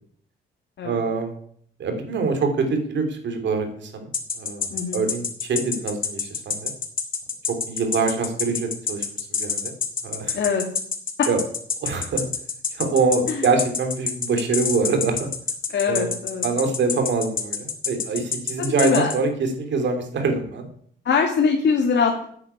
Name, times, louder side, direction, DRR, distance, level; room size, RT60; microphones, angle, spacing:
voice 1, 0.8-1.3 1.8-4.1 4.4-4.7 4.9-6.7 7.7-9.1 9.4-9.7 10.0-10.4 11.3-11.4 11.8-12.2 12.7-15.3 15.9-16.1 16.4-20.7, right 4 dB, 65° right, 5 dB, 3.2 m, -24 dB
sound 1, 4.1-19.2, left 6 dB, 45° left, 2.5 m, -26 dB
voice 2, 4.7-5.0 10.3-10.6 13.3-13.5 15.7-16.4 18.6-19.1 21.0-22.2, left 5 dB, 60° left, 1 dB, 2.3 m, -22 dB
9.6 x 8.8 x 8.5 m, 0.62 s
cardioid pair, 90°, 20 cm